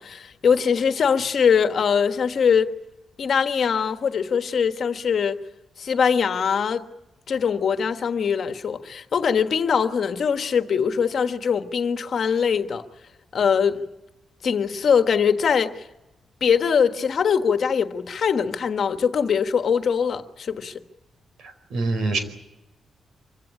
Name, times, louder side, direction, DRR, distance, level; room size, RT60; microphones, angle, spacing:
voice 1, 0.0-2.7 3.2-5.4 5.8-6.9 7.3-12.8 13.3-13.8 14.4-15.9 16.4-20.7, left 6 dB, 55° left, 1.4 m, -22 dB
voice 2, 21.4-22.2, right 3 dB, 80° right, 4.8 m, -25 dB
25.5 x 16.5 x 10.0 m
cardioid pair, 130°, 0 cm